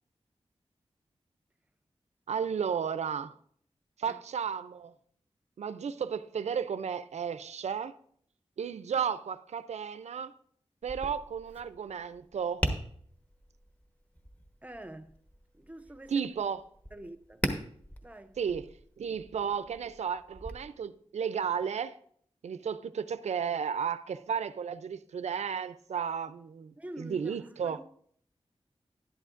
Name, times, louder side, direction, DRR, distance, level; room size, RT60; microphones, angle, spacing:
voice 1, 2.3-3.3 4.0-4.9 5.6-7.9 8.6-10.3 10.8-12.6 16.1-16.6 18.4-18.7 19.0-22.0 22.4-27.8, right 7 dB, 80° right, 0.4 m, -33 dB
Tap, 10.8-20.5, equal, 15° left, 1.1 m, -40 dB
voice 2, 14.6-15.2 15.5-16.3 16.9-17.5 18.0-18.4 26.8-27.8, right 1 dB, 15° right, 0.6 m, -46 dB
11.5 x 11.5 x 2.5 m
wide cardioid pair, 90°, 11 cm